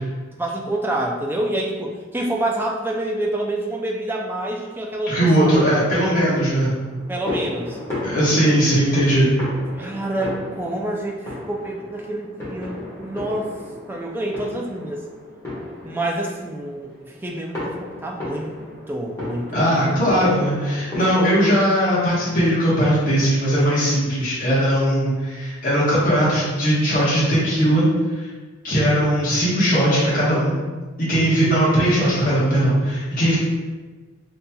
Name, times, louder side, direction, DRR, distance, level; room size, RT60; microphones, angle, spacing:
voice 1, 0.4-5.7 7.1-7.8 9.8-13.5 13.9-15.0 15.8-18.5 18.9-20.0, right 1 dB, 10° right, 0 dB, 0.3 m, -27 dB
voice 2, 5.1-6.7 8.0-9.3 19.5-28.3 28.6-30.5 31.0-33.4, equal, 40° left, -9 dB, 1.1 m, -19 dB
sound 1, 6.2-21.3, left 1 dB, 15° left, 1.2 m, -34 dB
5.1 x 2.8 x 2.2 m, 1.3 s
head